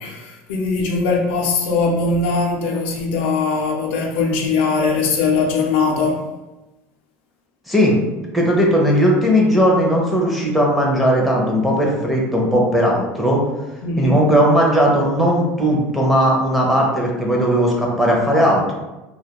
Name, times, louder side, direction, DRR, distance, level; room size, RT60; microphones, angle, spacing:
voice 1, 0.0-6.2 13.8-14.2, left 4 dB, 90° left, 0 dB, 0.4 m, -20 dB
voice 2, 7.7-8.0 8.3-13.4 14.0-18.7, equal, ahead, -3 dB, 0.5 m, -17 dB
2.2 x 2.2 x 2.8 m, 1.1 s
cardioid pair, 140°, 6 cm